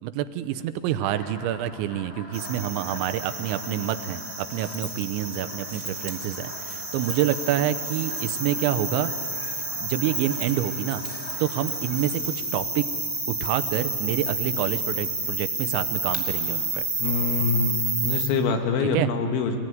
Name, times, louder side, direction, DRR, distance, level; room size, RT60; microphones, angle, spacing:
voice 1, 0.0-9.1 9.8-11.0 11.4-12.9 13.3-16.9 18.9-19.1, right 11 dB, 90° right, 12 dB, 3.1 m, -27 dB
sound 1, 1.0-12.0, left 3 dB, 55° left, 5.3 m, -44 dB
sound 2, 2.3-18.3, right 2 dB, 10° right, 1.6 m, -30 dB
voice 2, 17.0-19.6, left 4 dB, 90° left, 4 dB, 4.0 m, -25 dB
24.0 x 19.5 x 9.3 m, 2.5 s
omnidirectional pair, 5.1 m